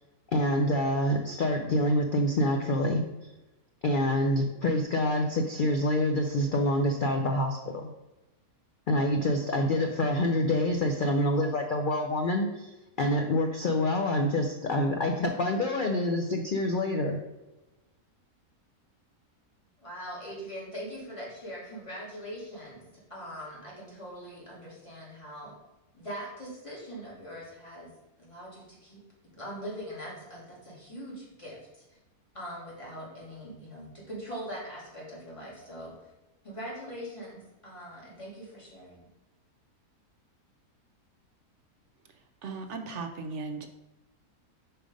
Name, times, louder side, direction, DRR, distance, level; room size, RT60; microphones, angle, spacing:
voice 1, 0.3-3.0 3.8-7.9 8.9-17.2, left 1 dB, 75° left, 3 dB, 0.4 m, -26 dB
voice 2, 19.8-22.8 23.1-25.5 25.9-27.9 28.2-29.0 29.3-32.0 32.3-36.1 36.4-39.0, equal, 20° left, -6 dB, 2.2 m, -42 dB
voice 3, 42.4-43.7, right 4 dB, 65° right, 6 dB, 0.7 m, -37 dB
5.1 x 4.6 x 5.1 m, 1.0 s
omnidirectional pair, 1.6 m